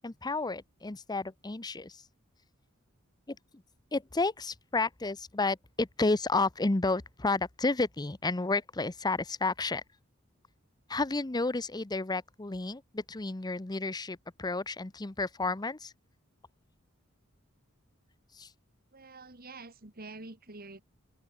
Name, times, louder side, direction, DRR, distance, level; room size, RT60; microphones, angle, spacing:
voice 1, 0.0-2.0 3.3-3.4 3.9-9.8 10.9-15.9 18.3-18.5, left 3 dB, 20° left, 0.8 m, -31 dB
voice 2, 18.9-20.8, right 3 dB, 45° right, 2.6 m, -47 dB
open air
head